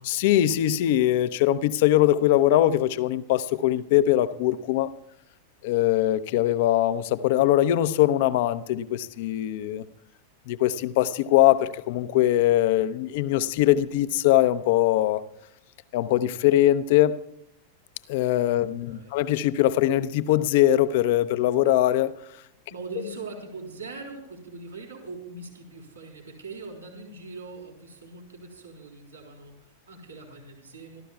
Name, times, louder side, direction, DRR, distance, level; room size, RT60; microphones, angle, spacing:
voice 1, 0.0-4.9 5.6-9.8 10.5-15.2 15.9-17.2 18.1-22.1, left 13 dB, 50° left, 13 dB, 0.7 m, -22 dB
voice 2, 18.6-19.2 22.7-31.0, right 3 dB, 80° right, 0 dB, 4.0 m, -41 dB
27.5 x 13.5 x 2.4 m, 0.76 s
figure-of-eight pair, 90°, 0 cm